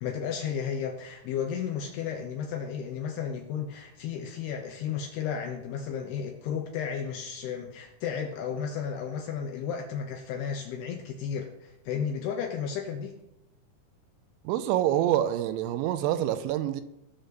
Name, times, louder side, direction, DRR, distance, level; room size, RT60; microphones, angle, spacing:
voice 1, 0.0-13.2, left 7 dB, 75° left, 2.6 m, -33 dB
voice 2, 14.5-16.8, right 12 dB, 85° right, 3.0 m, -26 dB
18.5 x 6.7 x 4.1 m
omnidirectional pair, 5.5 m